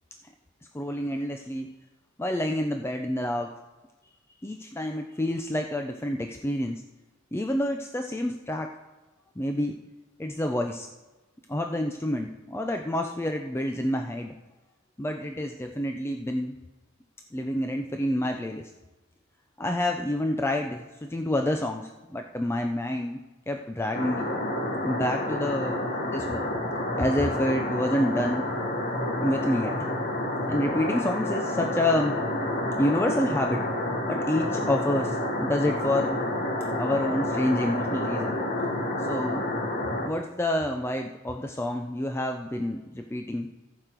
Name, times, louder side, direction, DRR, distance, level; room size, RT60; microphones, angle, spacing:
voice 1, 0.7-1.7 2.2-3.5 4.4-6.8 7.3-8.8 9.4-9.8 10.2-10.9 11.5-14.3 15.0-16.6 17.3-18.7 19.6-24.3 24.8-26.5 26.9-28.5 29.2-29.9 30.5-32.2 32.8-33.7 34.1-36.2 36.7-38.4 39.0-39.4 40.0-43.5, left 1 dB, 10° left, 4 dB, 0.4 m, -28 dB
sound 1, 23.9-40.1, left 1 dB, 40° left, 1.3 m, -29 dB
15.0 x 6.6 x 4.5 m, 1.2 s
head